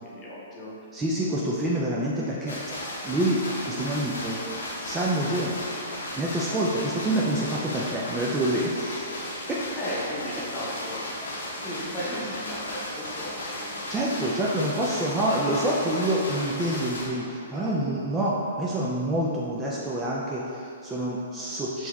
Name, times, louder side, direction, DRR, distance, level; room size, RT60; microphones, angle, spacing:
voice 1, 0.0-0.7 9.7-11.0 11.4-13.8, equal, 25° left, -6 dB, 0.8 m, -36 dB
voice 2, 0.9-2.6 3.0-4.4 4.6-5.6 6.1-9.1 12.0-12.2 13.9-21.9, right 1 dB, 15° right, -5 dB, 0.3 m, -27 dB
sound 1, 2.5-17.0, left 1 dB, 90° left, 0.7 m, -35 dB
4.4 x 2.8 x 2.2 m, 2.6 s
hypercardioid pair, 140°, 0 cm